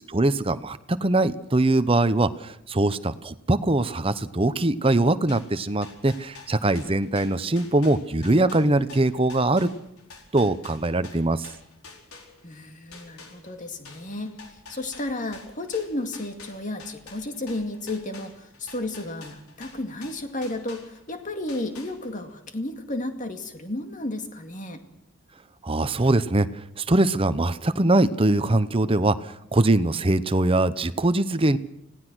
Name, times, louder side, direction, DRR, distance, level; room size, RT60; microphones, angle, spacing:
voice 1, 0.1-9.7 10.3-11.4 25.6-31.6, right 2 dB, 25° right, 12 dB, 0.8 m, -22 dB
sound 1, 5.3-12.6 12.9-21.2 21.5-22.3, left 4 dB, 90° left, 4.6 m, -47 dB
voice 2, 12.4-14.4 14.7-24.8, left 2 dB, 35° left, 5 dB, 2.3 m, -33 dB
26.0 x 17.5 x 6.3 m, 0.81 s
head